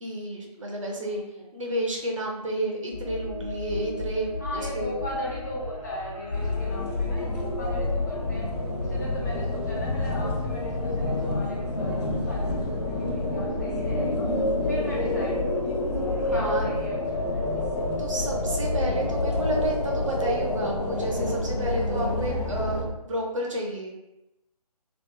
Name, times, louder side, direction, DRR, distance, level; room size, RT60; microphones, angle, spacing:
voice 1, 0.0-1.2 1.5-5.0 16.2-16.7 18.0-23.9, right 1 dB, 50° right, 0 dB, 0.6 m, -31 dB
voice 2, 1.1-1.5 4.4-8.5 8.8-14.3 14.7-15.7 16.3-17.5, left 1 dB, 30° left, -5 dB, 0.6 m, -38 dB
sound 1, 2.9-20.6, left 2 dB, 50° left, 1.0 m, -35 dB
sound 2, 6.3-22.8, left 2 dB, 75° left, 0.8 m, -28 dB
2.7 x 2.3 x 2.3 m, 0.90 s
figure-of-eight pair, 145°, 20 cm